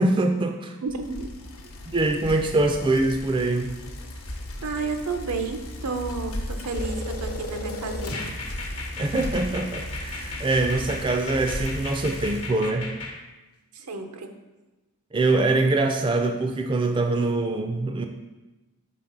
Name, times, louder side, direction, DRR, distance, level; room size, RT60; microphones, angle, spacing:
voice 1, 0.0-0.7 1.9-3.7 9.0-12.9 15.1-18.0, right 2 dB, 20° right, 5 dB, 0.3 m, -24 dB
voice 2, 0.8-1.5 4.6-8.2 13.7-14.3, right 4 dB, 90° right, 6 dB, 0.7 m, -31 dB
Bicycle, 0.9-12.6, left 1 dB, 65° left, 0.8 m, -36 dB
sound 1, 6.7-13.2, left 3 dB, 90° left, 1.0 m, -36 dB
5.8 x 3.7 x 5.1 m, 1.1 s
head